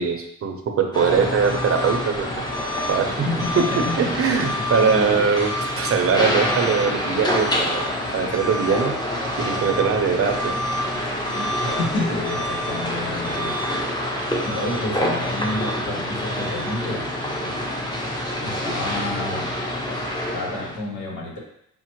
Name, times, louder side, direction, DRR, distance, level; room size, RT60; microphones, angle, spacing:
voice 1, 0.0-2.3 2.9-3.3 3.6-5.5 5.8-7.8 8.1-9.0 9.4-10.5, right 6 dB, 50° right, 4 dB, 0.6 m, -21 dB
sound 1, 0.9-20.8, left 1 dB, 15° left, 0.7 m, -26 dB
voice 2, 3.2-4.4 4.7-5.3 11.3-13.6 14.4-17.0 18.4-19.5 20.3-21.4, left 2 dB, 85° left, -2 dB, 1.1 m, -29 dB
5.7 x 2.1 x 3.0 m, 0.75 s
cardioid pair, 90°, 30 cm